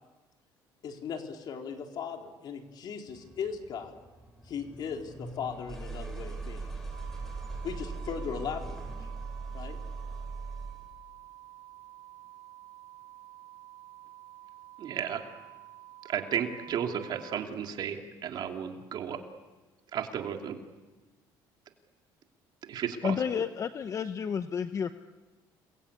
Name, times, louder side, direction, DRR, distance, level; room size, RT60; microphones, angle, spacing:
voice 1, 0.8-3.9 4.4-6.7 7.6-9.1 9.5-9.8, left 7 dB, 55° left, 3 dB, 3.8 m, -38 dB
sound 1, 3.1-10.9, right 4 dB, 5° left, 6.5 m, -40 dB
sound 2, 6.9-17.4, right 15 dB, 80° right, 5.5 m, -51 dB
voice 2, 14.8-15.2 16.0-19.2 19.9-20.6 22.7-23.1, right 8 dB, 55° right, 4 dB, 2.9 m, -33 dB
voice 3, 23.0-24.9, left 7 dB, 35° left, 10 dB, 0.8 m, -31 dB
29.5 x 22.5 x 8.6 m, 1.2 s
cardioid pair, 120°, 9 cm